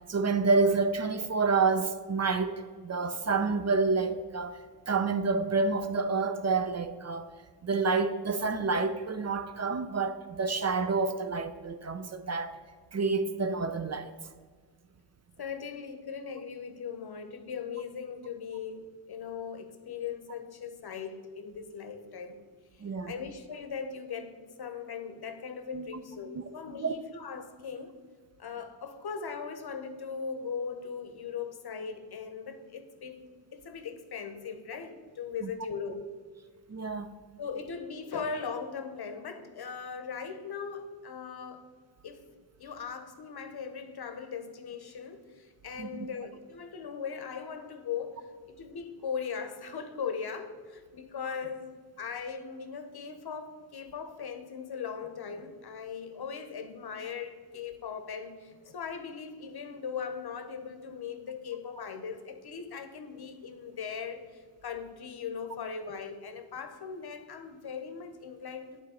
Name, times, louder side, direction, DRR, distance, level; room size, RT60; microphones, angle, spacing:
voice 1, 0.1-7.3 7.6-12.5 12.9-14.1 22.8-23.1 25.7-25.9 26.3-26.4 26.8-26.9 35.4-35.5 36.7-37.1 45.8-46.1, right 4 dB, 35° right, 0.5 m, -28 dB
voice 2, 15.4-22.4 23.1-28.0 28.4-33.2 33.5-36.1 37.4-41.7 42.0-42.3 42.6-68.8, left 6 dB, 55° left, 0.8 m, -39 dB
9.0 x 4.2 x 4.2 m
cardioid pair, 50°, 45 cm